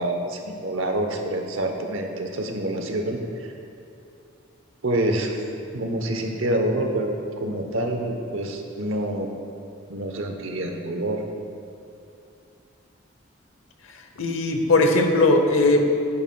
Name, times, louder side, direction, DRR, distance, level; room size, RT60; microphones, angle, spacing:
voice 1, 0.0-3.5 4.8-5.4 5.7-9.3 9.9-11.2, right 1 dB, 75° right, 4 dB, 0.9 m, -27 dB
voice 2, 14.2-15.8, left 2 dB, 80° left, 5 dB, 0.8 m, -19 dB
11.0 x 9.8 x 2.3 m, 2.6 s
head